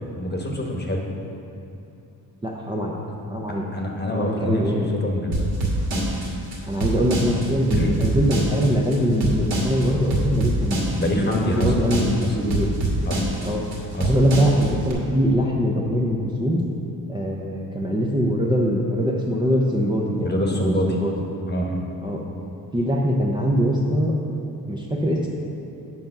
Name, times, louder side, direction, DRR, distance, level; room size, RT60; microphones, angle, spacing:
voice 1, 0.2-1.0 3.7-4.6 5.0-5.5 7.7-7.9 11.0-11.7 12.2-12.3 13.1-13.2 13.9-14.1 20.2-20.9 21.5-21.8, equal, 25° left, 0 dB, 1.2 m, -25 dB
voice 2, 2.4-3.0 3.3-3.7 4.1-4.9 6.7-12.7 13.4-13.6 14.0-16.6 17.1-21.1 22.0-22.2 22.7-24.1 24.7-25.3, equal, 10° right, -3 dB, 0.7 m, -22 dB
sound 1, 5.3-14.9, right 1 dB, 70° right, 2.1 m, -25 dB
7.7 x 5.3 x 6.0 m, 2.7 s
cardioid pair, 110°, 39 cm